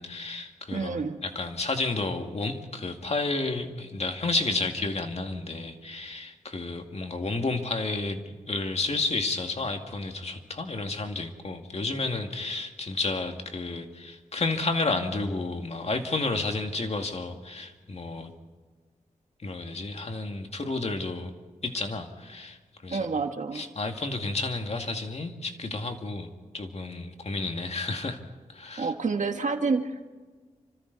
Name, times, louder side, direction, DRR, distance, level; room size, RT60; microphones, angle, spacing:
voice 1, 0.0-18.3 19.4-21.3 21.6-22.6 22.8-23.1 23.5-26.3 26.5-28.2 28.5-28.9, left 3 dB, 50° left, 4 dB, 2.3 m, -31 dB
voice 2, 0.7-1.2 22.9-23.7 28.8-30.1, right 4 dB, 65° right, 5 dB, 1.8 m, -28 dB
29.0 x 25.5 x 4.1 m, 1.4 s
cardioid pair, 60°, 13 cm